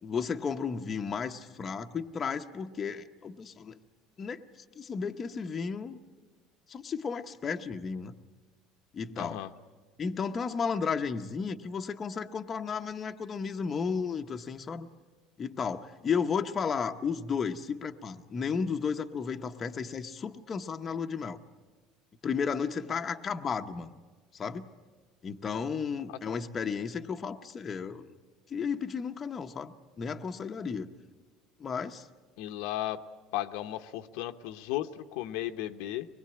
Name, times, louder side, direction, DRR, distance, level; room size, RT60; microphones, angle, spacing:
voice 1, 0.0-3.8 4.2-4.4 4.8-6.0 6.7-8.1 8.9-9.4 10.0-14.9 15.4-21.4 22.2-23.9 24.3-24.7 25.2-28.1 28.5-30.9 31.6-32.1, left 6 dB, 25° left, 5 dB, 0.9 m, -33 dB
voice 2, 9.2-9.5 32.4-33.0 33.3-36.1, left 14 dB, 75° left, 8 dB, 1.0 m, -35 dB
24.5 x 21.0 x 8.8 m, 1.3 s
cardioid pair, 145°, 0 cm